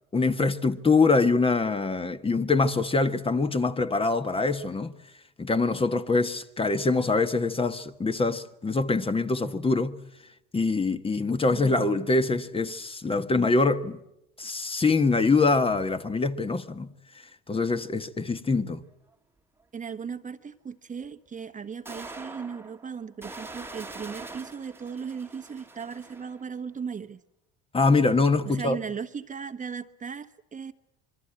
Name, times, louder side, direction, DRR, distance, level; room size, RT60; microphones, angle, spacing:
voice 1, 0.1-4.9 5.4-10.0 10.5-14.0 14.4-16.9 17.5-18.8 27.7-28.8, left 3 dB, 20° left, 1.4 m, -24 dB
sound 1, 19.1-19.2 21.0-21.1 21.9-26.5, right 2 dB, 10° right, 1.6 m, -43 dB
voice 2, 19.7-27.2 28.4-30.7, right 6 dB, 25° right, 1.2 m, -37 dB
26.0 x 23.0 x 8.8 m
supercardioid pair, 95°, 29 cm